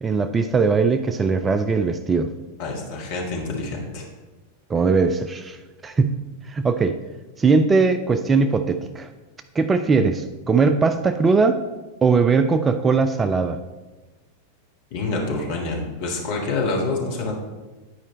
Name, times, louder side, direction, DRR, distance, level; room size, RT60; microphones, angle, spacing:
voice 1, 0.0-2.3 4.7-5.6 5.8-6.2 6.5-7.0 7.4-9.1 9.6-11.6 12.0-13.6, right 4 dB, 15° right, 9 dB, 0.4 m, -20 dB
voice 2, 2.6-4.0 14.9-17.4, left 3 dB, 50° left, -1 dB, 1.7 m, -27 dB
9.5 x 4.9 x 4.2 m, 1.2 s
figure-of-eight pair, 90°, 0 cm